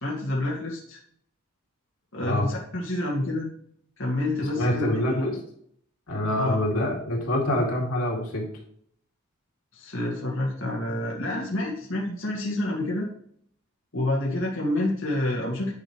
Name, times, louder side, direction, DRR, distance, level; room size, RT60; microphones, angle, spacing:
voice 1, 0.0-1.0 2.1-3.5 4.0-5.3 6.3-6.5 9.7-13.1 13.9-15.7, left 1 dB, 65° left, -3 dB, 2.0 m, -28 dB
voice 2, 4.6-5.4 6.1-8.4, left 1 dB, 90° left, -2 dB, 2.5 m, -25 dB
10.5 x 4.9 x 3.1 m, 0.64 s
head